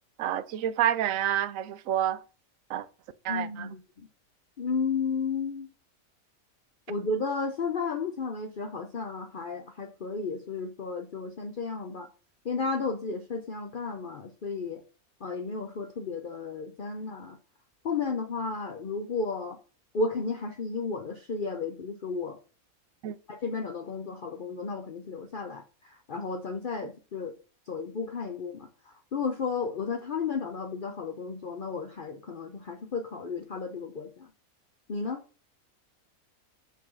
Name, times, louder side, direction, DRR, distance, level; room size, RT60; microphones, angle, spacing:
voice 1, 0.2-2.2 2.7-2.9 3.2-3.8 23.0-23.2, right 11 dB, 70° right, 0.9 m, -28 dB
voice 2, 3.3-4.1 4.6-5.7 6.9-12.1 12.4-14.8 15.2-17.4 17.8-19.6 19.9-22.4 23.3-27.4 27.7-34.3 34.9-35.2, left 4 dB, 45° left, 0.7 m, -33 dB
6.0 x 5.6 x 6.2 m
omnidirectional pair, 1.5 m